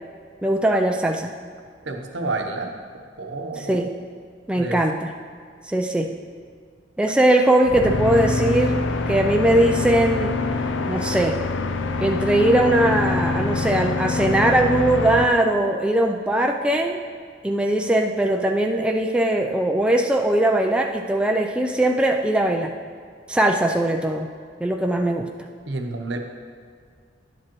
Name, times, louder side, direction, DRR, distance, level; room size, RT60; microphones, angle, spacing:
voice 1, 0.4-1.4 3.6-3.9 4.5-5.1 5.7-6.1 7.0-10.4 10.9-11.4 12.0-17.0 17.4-22.7 23.3-24.3 24.6-25.3, right 1 dB, 5° right, 2 dB, 0.3 m, -20 dB
voice 2, 1.8-2.7 3.2-3.8 4.6-4.8 25.7-26.2, right 3 dB, 70° right, 3 dB, 0.9 m, -29 dB
sound 1, 7.6-15.2, left 3 dB, 85° left, 0.5 m, -24 dB
11.0 x 7.5 x 3.0 m, 2.1 s
head